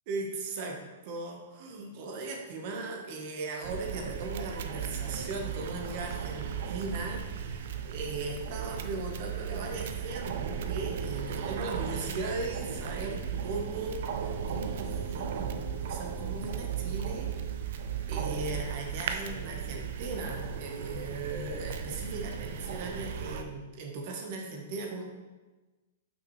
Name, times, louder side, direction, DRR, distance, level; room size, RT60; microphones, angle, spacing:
voice 1, 0.1-0.8 1.0-17.3 17.7-17.8 18.1-25.0, right 3 dB, 40° right, 2 dB, 0.9 m, -38 dB
sound 1, 3.6-23.4, right 7 dB, 55° right, 0.4 m, -36 dB
5.9 x 5.4 x 3.0 m, 1.2 s
hypercardioid pair, 165°, 0 cm